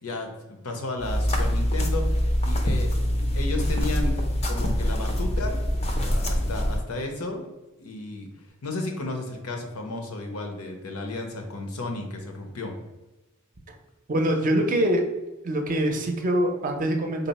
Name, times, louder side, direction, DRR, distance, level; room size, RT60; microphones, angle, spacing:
voice 1, 0.0-4.1 4.5-5.6 5.9-7.5 7.8-8.3 8.6-12.7, left 2 dB, 80° left, 3 dB, 0.7 m, -33 dB
sound 1, 1.0-6.8, equal, 30° left, 0.5 m, -24 dB
voice 2, 14.1-15.1 15.4-17.3, right 1 dB, 40° right, 3 dB, 0.5 m, -24 dB
4.0 x 2.0 x 4.1 m, 1.1 s
head